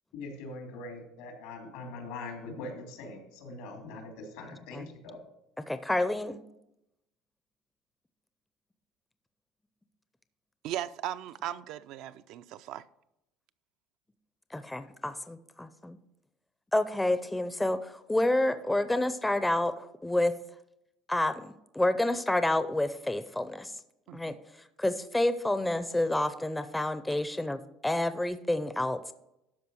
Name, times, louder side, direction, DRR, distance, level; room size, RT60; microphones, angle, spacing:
voice 1, 0.1-5.2, left 3 dB, 90° left, 2.8 m, -42 dB
voice 2, 5.6-6.4 14.5-16.0 16.7-20.4 21.1-23.7 24.1-29.1, left 1 dB, 5° left, 0.5 m, -29 dB
voice 3, 10.6-12.8 24.1-24.4, right 12 dB, 60° right, 0.4 m, -38 dB
12.5 x 4.7 x 6.2 m
cardioid pair, 130°, 0 cm